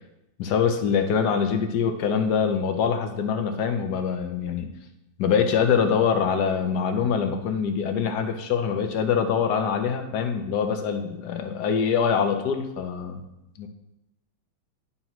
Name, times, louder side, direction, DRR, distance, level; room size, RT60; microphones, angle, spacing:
voice 1, 0.4-4.7 5.2-13.2 13.6-13.7, left 6 dB, 65° left, 6 dB, 1.2 m, -24 dB
11.0 x 5.6 x 3.0 m, 0.91 s
omnidirectional pair, 2.1 m